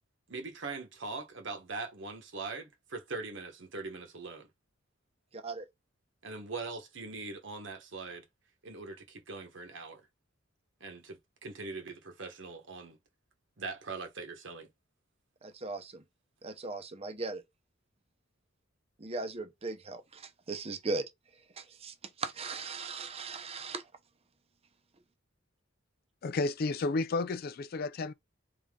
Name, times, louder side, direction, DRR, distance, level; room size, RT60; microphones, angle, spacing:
voice 1, 0.3-4.5 6.2-8.2 8.6-10.0 10.8-13.0 13.6-14.7, right 3 dB, 65° right, 1.2 m, -41 dB
voice 2, 5.3-5.7 15.4-16.0 16.4-17.4 19.0-21.0 21.6-23.8, right 3 dB, 30° right, 0.7 m, -38 dB
voice 3, 26.2-28.1, left 3 dB, 50° left, 0.4 m, -32 dB
4.0 x 3.5 x 3.7 m
head